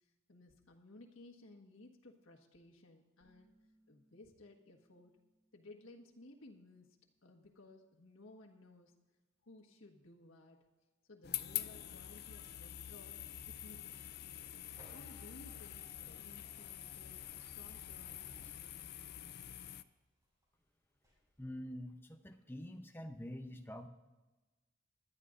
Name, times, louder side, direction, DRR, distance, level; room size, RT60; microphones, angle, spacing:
voice 1, 0.3-3.5 3.9-5.2 5.5-7.0 7.2-8.9 9.4-10.6 11.1-13.2 13.5-14.5 14.9-18.8, left 2 dB, 75° left, 0 dB, 1.5 m, -58 dB
sound 1, 3.2-8.6, right 1 dB, 25° left, 5.3 m, -76 dB
sound 2, 11.2-19.8, left 12 dB, 50° left, 0.4 m, -46 dB
sound 3, 12.3-19.1 19.6-20.6 20.9-21.4, right 1 dB, 15° right, 4.8 m, -65 dB
voice 2, 21.4-23.9, equal, 10° left, 6 dB, 0.7 m, -46 dB
20.5 x 12.5 x 2.6 m, 1.2 s
head